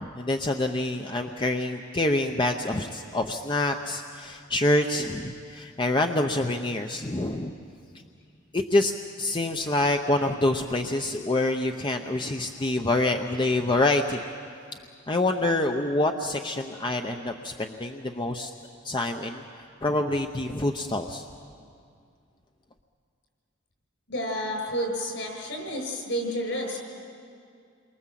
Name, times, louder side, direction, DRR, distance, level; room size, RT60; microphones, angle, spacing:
voice 1, 0.0-7.5 8.5-8.9 9.2-14.2 15.1-18.5 18.8-21.2, left 2 dB, 25° left, 4 dB, 0.8 m, -26 dB
voice 2, 24.1-26.8, equal, 65° left, 2 dB, 6.9 m, -30 dB
28.5 x 23.5 x 7.6 m, 2.3 s
head